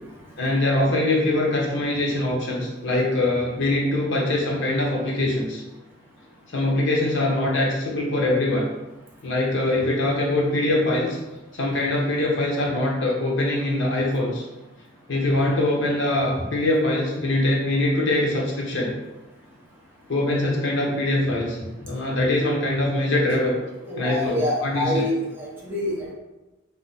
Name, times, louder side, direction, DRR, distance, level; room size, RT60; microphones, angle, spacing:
voice 1, 0.4-5.6 6.5-8.6 9.2-11.2 11.5-14.4 15.1-18.9 20.1-23.5 24.0-24.9, left 1 dB, 65° left, -3 dB, 0.8 m, -23 dB
voice 2, 23.9-26.1, left 1 dB, 10° right, -5 dB, 0.7 m, -26 dB
2.6 x 2.1 x 3.9 m, 1.0 s
head